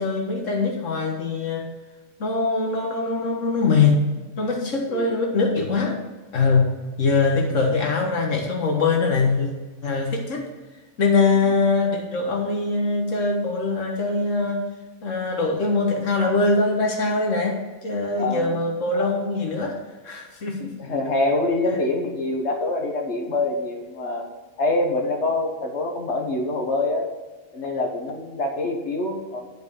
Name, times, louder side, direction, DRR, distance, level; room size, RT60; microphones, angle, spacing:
voice 1, 0.0-1.7 2.2-4.0 4.4-6.0 6.3-9.5 9.8-10.4 11.0-14.6 15.0-19.8 20.0-20.8, left 3 dB, 85° left, 1 dB, 1.7 m, -22 dB
voice 2, 18.2-18.5 20.8-24.3 24.6-27.1 27.5-29.5, left 2 dB, 65° left, 0 dB, 1.7 m, -25 dB
10.5 x 5.5 x 6.4 m, 1.3 s
omnidirectional pair, 1.3 m